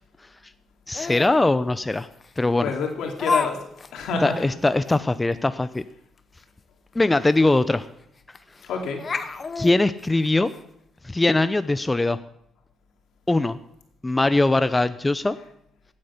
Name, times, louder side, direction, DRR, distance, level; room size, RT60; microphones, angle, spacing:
Laughter, 0.9-1.4 2.2-2.3 3.2-3.5 3.8-3.9 4.4-4.5 4.8-5.0 6.9-7.0 7.3-7.4 8.3-8.6 9.0-10.6, left 4 dB, 35° left, 0.9 m, -28 dB
voice 1, 0.9-2.1 2.4-2.7 4.2-5.8 7.0-7.8 9.6-10.5 11.0-12.2 13.3-13.6 14.0-15.4, left 2 dB, 15° left, 13 dB, 0.5 m, -21 dB
voice 2, 2.6-4.4 8.6-9.1, left 5 dB, 80° left, 3 dB, 2.5 m, -28 dB
16.0 x 8.7 x 5.7 m, 0.74 s
cardioid pair, 90°, 0 cm